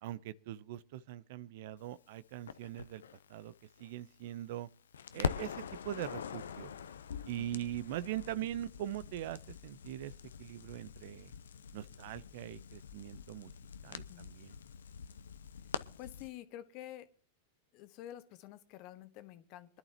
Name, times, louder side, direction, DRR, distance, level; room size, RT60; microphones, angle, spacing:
voice 1, 0.0-3.0 3.3-3.5 3.8-4.7 5.1-6.7 7.3-10.1 10.4-11.3 11.7-13.5 13.8-14.5, right 13 dB, 60° right, 0.6 m, -41 dB
Crackle, 2.5-4.6 4.9-16.3, left 7 dB, 80° left, 0.7 m, -44 dB
voice 2, 7.4-7.7 13.9-14.3 16.0-17.1 17.7-19.8, left 13 dB, 50° left, 1.3 m, -49 dB
24.5 x 11.0 x 2.9 m
hypercardioid pair, 100°, 0 cm